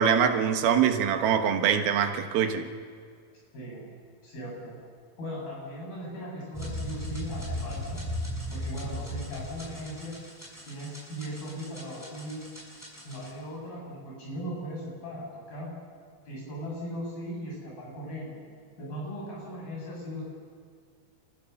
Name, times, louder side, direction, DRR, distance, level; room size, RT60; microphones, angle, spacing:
voice 1, 0.0-2.7, right 8 dB, 85° right, 6 dB, 3.2 m, -24 dB
voice 2, 4.2-4.8 5.2-8.0 8.5-10.1 10.7-12.4 13.0-15.7 16.3-18.4 18.8-20.2, equal, 80° left, -4 dB, 9.8 m, -38 dB
sound 1, 6.5-13.3, equal, 5° left, 6.0 m, -37 dB
28.5 x 14.5 x 7.1 m, 2.1 s
omnidirectional pair, 4.2 m